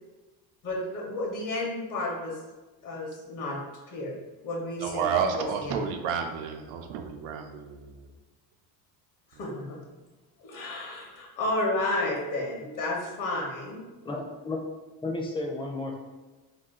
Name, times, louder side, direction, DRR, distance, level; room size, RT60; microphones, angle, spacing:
voice 1, 0.6-2.4 2.8-3.6 3.9-4.2 4.4-5.8 9.4-9.8 10.4-13.8, left 2 dB, 50° left, -1 dB, 1.0 m, -32 dB
voice 2, 4.8-8.1, right 6 dB, 85° right, 5 dB, 0.5 m, -31 dB
voice 3, 14.0-14.6 15.0-16.0, left 2 dB, 15° left, 0 dB, 0.5 m, -32 dB
2.8 x 2.3 x 3.6 m, 1.2 s
cardioid pair, 120°, 39 cm